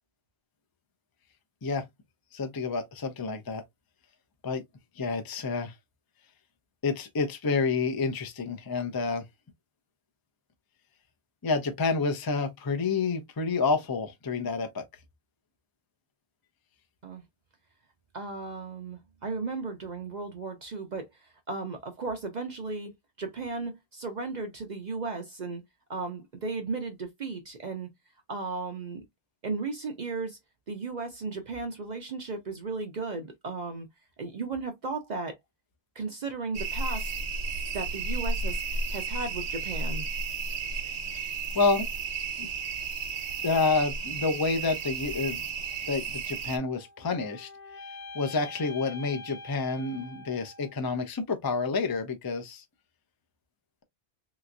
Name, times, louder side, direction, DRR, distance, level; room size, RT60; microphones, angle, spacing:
voice 1, 2.3-3.6 4.4-4.6 5.0-5.7 6.8-9.2 11.4-14.8 41.1-41.2 41.5-41.9 42.4-42.5 43.4-45.4 45.9-47.5 48.1-52.6, left 4 dB, 25° left, 0.5 m, -29 dB
voice 2, 18.1-22.9 23.2-25.6 25.9-27.9 28.3-29.0 29.4-30.4 30.7-33.9 34.2-35.4 35.9-37.1 37.7-40.1, right 4 dB, 50° right, 0.7 m, -35 dB
sound 1, 36.5-46.6, right 4 dB, 80° right, 1.2 m, -33 dB
sound 2, 46.6-50.9, left 2 dB, 65° left, 1.0 m, -45 dB
3.3 x 2.9 x 2.5 m
omnidirectional pair, 1.1 m